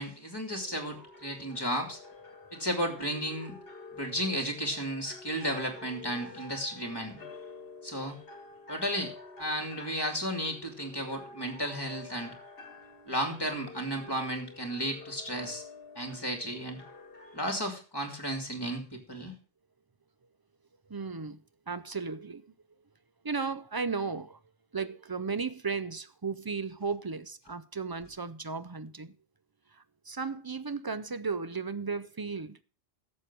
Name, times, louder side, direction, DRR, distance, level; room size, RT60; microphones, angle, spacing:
voice 1, 0.0-2.0 2.5-3.6 3.9-7.2 7.8-8.2 8.7-9.1 9.4-12.3 13.1-15.6 16.0-16.8 17.3-19.3, equal, 20° left, 2.5 m, -33 dB
sound 1, 0.5-17.5, left 3 dB, 60° left, 1.5 m, -49 dB
voice 2, 20.9-21.4 21.7-22.5 23.2-24.4 24.7-29.1 29.7-32.6, right 4 dB, 35° right, 0.4 m, -35 dB
11.5 x 7.5 x 6.1 m
omnidirectional pair, 1.1 m